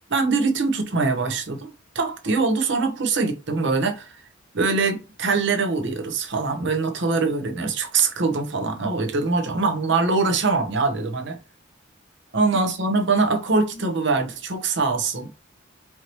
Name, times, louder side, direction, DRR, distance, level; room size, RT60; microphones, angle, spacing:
voice 1, 0.1-4.2 4.5-11.4 12.3-15.3, right 4 dB, 65° right, 0.9 m, -23 dB
4.6 x 3.0 x 2.9 m
head